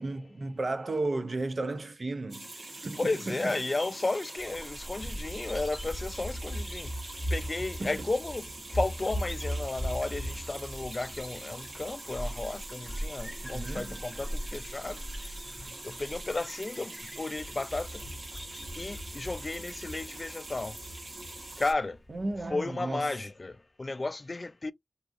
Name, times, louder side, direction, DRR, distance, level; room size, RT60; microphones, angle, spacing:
voice 1, 0.0-2.5 2.8-3.6 7.8-8.0 13.4-14.0 22.1-23.2, right 2 dB, 65° right, 0.5 m, -34 dB
sound 1, 2.3-21.7, right 2 dB, 85° right, 1.0 m, -44 dB
voice 2, 3.0-6.9 7.3-15.0 15.5-18.0 18.8-20.8 21.6-22.0 22.5-24.7, left 2 dB, 50° left, 0.3 m, -33 dB
Bird vocalization bird call bird song, 4.4-22.5, equal, 5° right, 0.9 m, -39 dB
2.7 x 2.4 x 2.6 m
wide cardioid pair, 55°, 0 cm